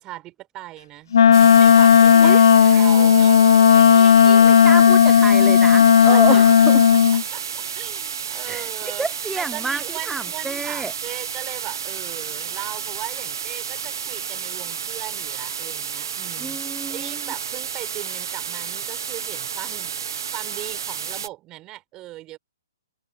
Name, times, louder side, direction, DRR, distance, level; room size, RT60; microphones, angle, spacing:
voice 1, 0.0-4.8 5.9-6.7 7.3-9.1 9.4-16.6 16.9-22.4, right 17 dB, 25° right, 5.4 m, -38 dB
Wind instrument woodwind instrument, 1.1-7.2, left 8 dB, 65° left, 0.9 m, -13 dB
sound 1, 1.3-21.3, right 7 dB, 70° right, 1.3 m, -31 dB
voice 2, 2.2-2.8 3.9-6.8 8.5-10.9 16.4-17.2, right 3 dB, 5° right, 1.0 m, -29 dB
hypercardioid pair, 135°, 2 cm